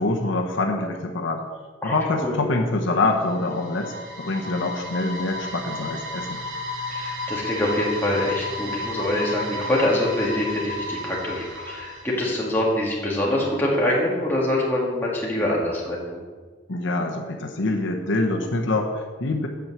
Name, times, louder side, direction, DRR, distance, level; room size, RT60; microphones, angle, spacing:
voice 1, 0.0-1.4 1.8-6.4 16.7-19.5, left 2 dB, 75° left, 3 dB, 0.9 m, -25 dB
sound 1, 2.8-12.8, left 2 dB, 75° right, 1.0 m, -33 dB
voice 2, 6.9-16.2, left 1 dB, 10° left, -5 dB, 1.8 m, -24 dB
8.4 x 4.5 x 7.3 m, 1.4 s
head